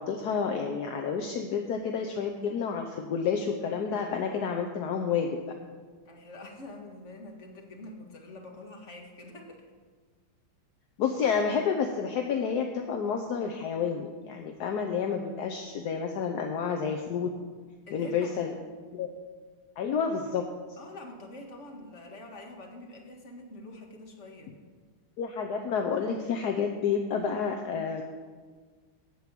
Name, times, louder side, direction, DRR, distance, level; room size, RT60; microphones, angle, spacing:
voice 1, 0.0-5.4 11.0-17.3 17.9-18.5 18.9-19.1 19.8-20.5 25.2-28.0, left 6 dB, 65° left, 3 dB, 1.1 m, -30 dB
voice 2, 6.0-9.7 17.9-18.7 20.8-24.5, left 2 dB, 35° left, 2 dB, 1.6 m, -46 dB
13.0 x 4.8 x 8.3 m, 1.5 s
omnidirectional pair, 2.3 m